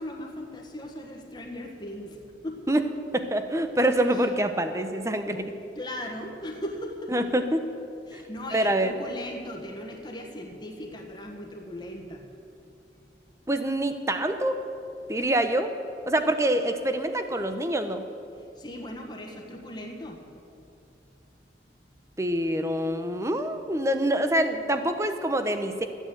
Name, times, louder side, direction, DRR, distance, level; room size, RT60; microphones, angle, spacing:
voice 1, 0.0-2.7 4.1-4.2 5.7-7.1 8.1-12.3 18.4-20.2, left 1 dB, 25° left, 1 dB, 1.4 m, -38 dB
voice 2, 3.1-5.5 7.1-7.6 8.5-8.9 13.5-14.6 15.1-15.7 16.1-18.0 22.2-25.9, right 1 dB, 15° right, 8 dB, 0.7 m, -25 dB
13.5 x 9.1 x 7.8 m, 2.7 s
head